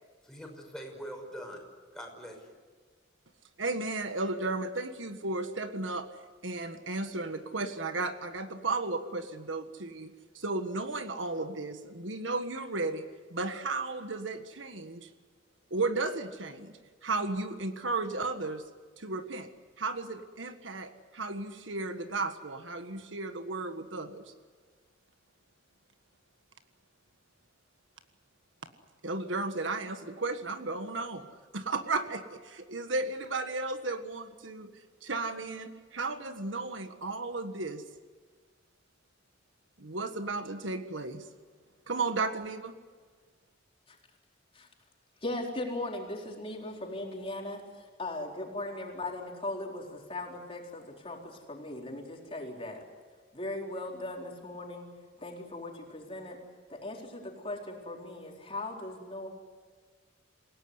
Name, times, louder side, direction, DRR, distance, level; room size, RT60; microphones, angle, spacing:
voice 1, 0.2-1.6 1.9-2.6, equal, 5° left, 1 dB, 6.0 m, -43 dB
voice 2, 3.6-6.1 6.4-13.0 13.3-15.1 15.7-16.7 17.0-18.6 19.0-19.5 19.8-24.2 29.0-31.3 31.5-34.7 35.0-37.8 39.8-41.2 41.9-42.7, right 3 dB, 75° right, 8 dB, 1.6 m, -34 dB
voice 3, 45.2-52.8 53.3-54.9 55.2-56.4 56.7-59.3, left 2 dB, 30° left, 0 dB, 4.3 m, -38 dB
28.5 x 17.5 x 9.7 m, 1.5 s
head